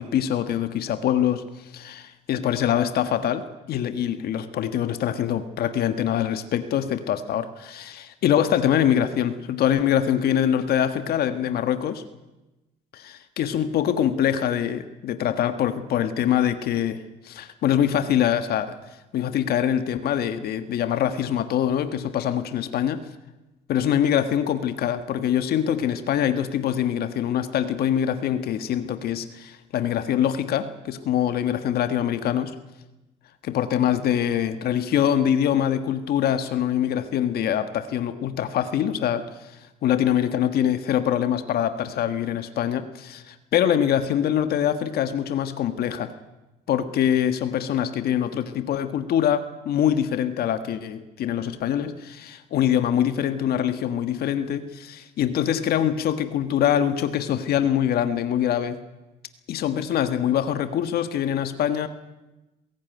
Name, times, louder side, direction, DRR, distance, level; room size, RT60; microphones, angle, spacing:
voice 1, 0.0-12.0 12.9-18.8 19.1-23.0 23.7-32.5 33.4-39.3 39.8-46.1 46.7-58.8 59.5-61.9, left 10 dB, 65° left, 9 dB, 1.5 m, -24 dB
21.5 x 17.0 x 9.2 m, 1.0 s
cardioid pair, 110°, 17 cm